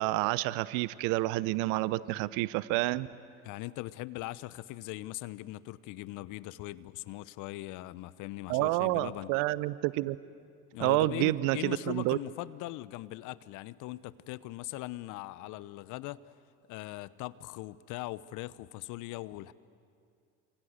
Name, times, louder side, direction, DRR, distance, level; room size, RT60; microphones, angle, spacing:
voice 1, 0.0-3.1 8.5-10.2 10.8-12.2, right 19 dB, 60° right, 19 dB, 0.8 m, -29 dB
voice 2, 3.4-9.3 10.7-16.2 16.7-19.5, left 17 dB, 55° left, 18 dB, 0.9 m, -40 dB
28.5 x 26.0 x 8.0 m, 2.3 s
hypercardioid pair, 65°, 36 cm